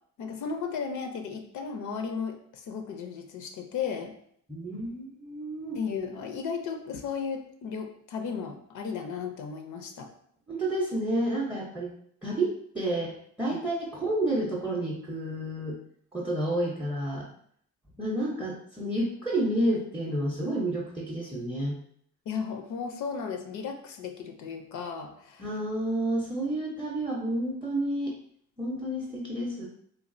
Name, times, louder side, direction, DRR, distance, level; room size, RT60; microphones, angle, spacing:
voice 1, 0.2-4.1 5.8-10.1 13.5-13.6 22.3-25.5, left 6 dB, 75° left, 5 dB, 0.5 m, -35 dB
voice 2, 4.5-5.8 10.5-11.9 12.2-15.8 16.1-17.3 18.0-21.8 25.4-28.1 28.6-29.7, right 1 dB, 5° right, -2 dB, 0.5 m, -30 dB
3.1 x 2.4 x 2.5 m, 0.66 s
cardioid pair, 90°, 30 cm